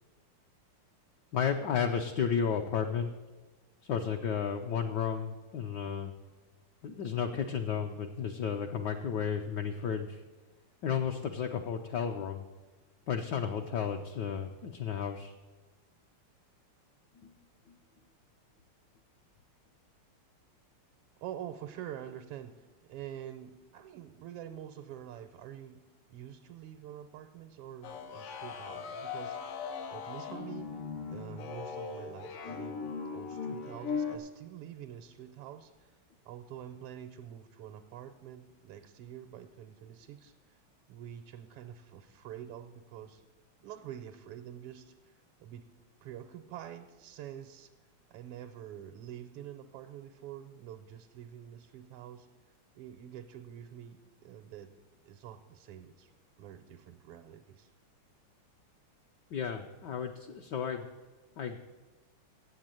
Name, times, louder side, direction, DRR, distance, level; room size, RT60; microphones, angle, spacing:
voice 1, 1.3-3.1 3.8-6.1 6.8-10.2 10.8-12.5 13.1-15.3 17.2-17.3 32.4-32.7 59.3-60.9 61.4-61.6, left 7 dB, 70° left, 4 dB, 1.0 m, -33 dB
voice 2, 21.2-25.8 26.1-36.0 36.2-40.6 40.9-43.2 43.6-45.6 46.0-47.7 48.1-52.3 52.7-54.7 55.0-56.1 56.4-57.7, right 10 dB, 90° right, 6 dB, 1.6 m, -46 dB
sound 1, 27.8-34.2, left 6 dB, 90° left, 1.9 m, -39 dB
8.1 x 7.9 x 8.9 m, 1.2 s
omnidirectional pair, 2.4 m